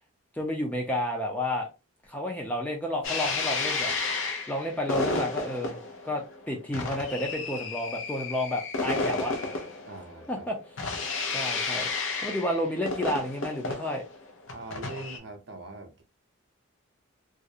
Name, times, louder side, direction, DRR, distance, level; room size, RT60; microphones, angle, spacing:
voice 1, 0.3-1.7 2.0-4.0 4.5-5.8 6.0-9.3 10.3-10.6 11.3-11.9 12.2-14.0, left 1 dB, 5° left, 0.4 m, -31 dB
sound 1, 3.0-15.2, left 3 dB, 65° left, 0.6 m, -32 dB
voice 2, 9.8-10.5 14.5-16.0, right 2 dB, 55° right, 0.5 m, -42 dB
2.4 x 2.0 x 2.6 m
head